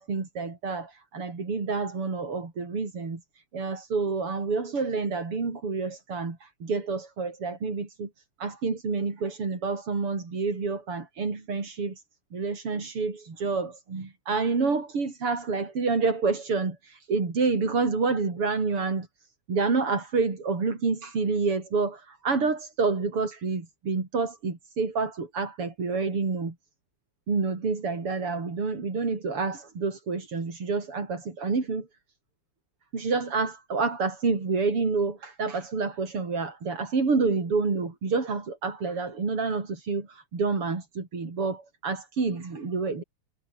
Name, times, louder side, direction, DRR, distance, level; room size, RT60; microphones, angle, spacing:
voice 1, 0.0-8.1 8.4-12.0 12.3-19.1 19.5-26.6 27.3-31.9 32.9-43.0, right 4 dB, 90° right, 5.3 m, -28 dB
omnidirectional pair, 2.4 m